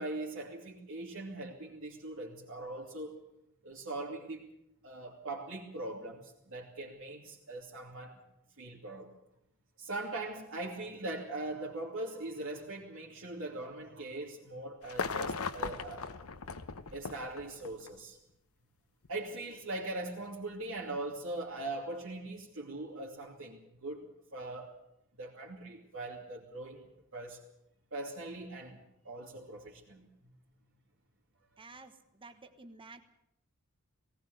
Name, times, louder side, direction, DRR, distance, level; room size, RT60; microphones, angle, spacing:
voice 1, 0.0-3.2 3.6-4.5 4.8-8.2 8.6-9.1 9.8-16.1 16.9-18.2 19.1-24.8 25.2-27.4 27.9-28.8 29.0-30.1, right 2 dB, 65° right, 2.8 m, -41 dB
sound 1, 14.8-18.0 19.0-19.1, left 4 dB, 75° left, 1.0 m, -38 dB
voice 2, 31.6-33.0, right 3 dB, 25° right, 1.3 m, -52 dB
18.5 x 17.5 x 8.0 m
head